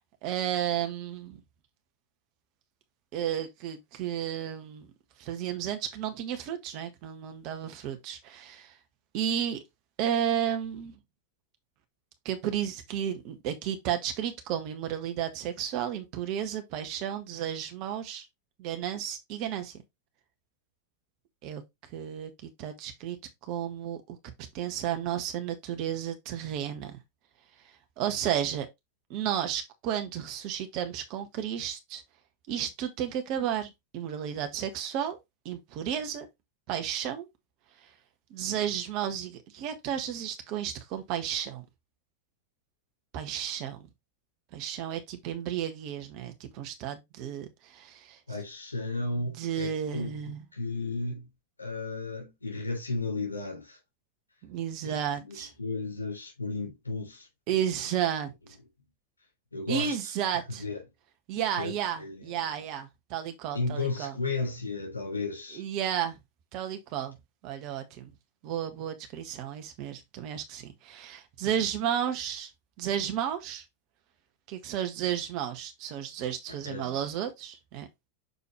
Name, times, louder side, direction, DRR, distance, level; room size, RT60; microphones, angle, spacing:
voice 1, 0.2-1.4 3.1-4.9 5.2-8.7 9.1-9.6 10.0-11.0 12.2-18.3 18.6-19.7 21.4-21.6 21.9-23.2 23.5-24.2 24.5-27.0 28.0-28.7 29.1-32.0 32.5-35.2 35.4-36.3 36.7-37.3 37.8-37.9 38.3-41.6 43.1-43.9 44.5-48.2 49.1-50.4 54.4-55.5 57.5-58.3 59.7-60.6 61.3-64.1 65.5-66.2 66.5-67.1 67.4-68.1 68.4-72.5 72.8-73.6 74.5-77.9, right 9 dB, 40° right, 1.5 m, -32 dB
voice 2, 48.3-50.1 50.5-51.3 51.6-53.8 54.8-58.1 59.5-60.0 60.3-60.8 61.6-62.6 63.5-65.6 76.5-77.0, left 3 dB, 80° left, 3.3 m, -34 dB
6.7 x 4.7 x 3.1 m
figure-of-eight pair, 90°, 0 cm